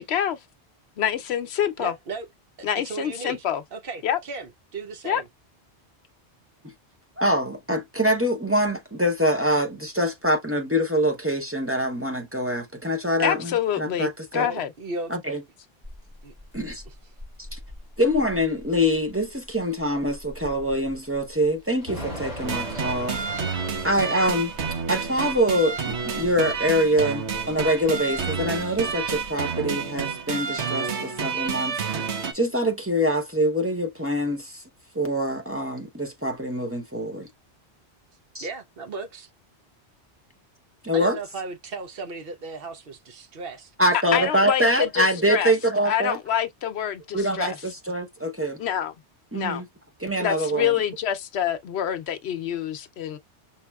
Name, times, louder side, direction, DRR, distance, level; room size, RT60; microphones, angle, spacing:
voice 1, 0.0-0.4 1.0-1.9 2.6-3.6 4.0-4.2 5.0-5.2 13.2-14.7 44.1-45.5 45.9-47.5 48.6-48.9 49.3-49.6 50.2-53.2, left 10 dB, 70° left, 0.8 m, -26 dB
voice 2, 1.8-2.3 2.6-3.4 3.7-5.3 14.3-15.2 16.2-16.3 16.9-17.0 38.4-39.3 40.9-44.4, right 3 dB, 60° right, 0.8 m, -36 dB
voice 3, 7.2-14.5 15.1-15.4 16.5-16.8 17.5-17.6 18.0-23.2 23.5-24.5 24.9-31.8 32.3-34.6 34.9-37.3 38.3-38.5 40.8-41.2 43.8-46.2 47.1-48.6 49.3-49.7 50.0-50.7, equal, 15° right, 0.6 m, -24 dB
Thunder / Rain, 15.8-29.3, equal, 40° right, 2.6 m, -41 dB
sound 1, 22.4-32.3, right 6 dB, 75° right, 1.2 m, -30 dB
5.7 x 2.9 x 2.3 m
omnidirectional pair, 1.2 m